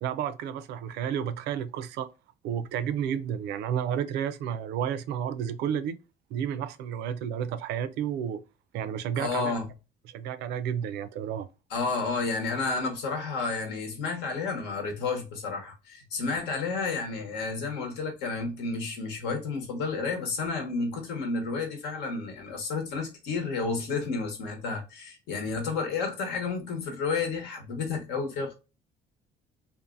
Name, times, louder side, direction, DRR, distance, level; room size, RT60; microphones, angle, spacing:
voice 1, 0.0-2.1 2.4-6.0 6.3-8.4 8.7-9.6 10.1-11.5, right 9 dB, 85° right, 0.4 m, -31 dB
voice 2, 9.1-9.6 11.7-28.5, left 4 dB, 90° left, 1.1 m, -31 dB
2.6 x 2.5 x 2.4 m
cardioid pair, 110°, 17 cm